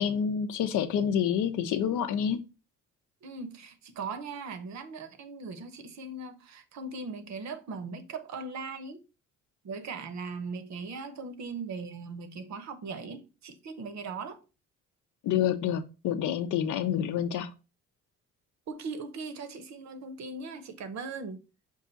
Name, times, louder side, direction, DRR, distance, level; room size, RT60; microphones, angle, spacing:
voice 1, 0.0-2.4 15.2-17.5, left 9 dB, 80° left, 0.6 m, -28 dB
voice 2, 3.2-9.0 9.6-14.4 18.7-21.4, right 4 dB, 65° right, 0.8 m, -39 dB
5.5 x 2.5 x 3.8 m
cardioid pair, 90°, 30 cm